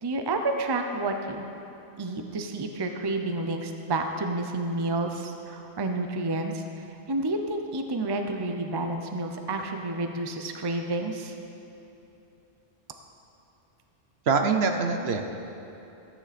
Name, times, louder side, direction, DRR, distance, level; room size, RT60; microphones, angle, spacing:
voice 1, 0.0-1.4 2.0-11.3, right 2 dB, 25° right, 5 dB, 0.6 m, -30 dB
voice 2, 14.3-15.2, right 5 dB, 65° right, 5 dB, 1.0 m, -24 dB
14.0 x 9.3 x 4.2 m, 3.0 s
omnidirectional pair, 1.2 m